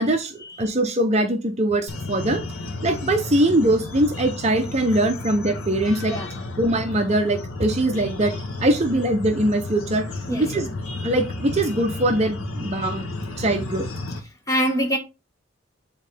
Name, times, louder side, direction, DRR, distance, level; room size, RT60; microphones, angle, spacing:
voice 1, 0.0-2.4 2.8-6.1 6.6-8.3 8.6-10.0 10.4-10.7 11.0-13.1 13.4-13.9, right 1 dB, 30° right, 0.7 m, -22 dB
sound 1, 1.9-14.2, left 2 dB, 90° left, 1.3 m, -32 dB
voice 2, 14.5-15.0, equal, 15° left, 1.2 m, -24 dB
8.8 x 3.7 x 3.4 m
head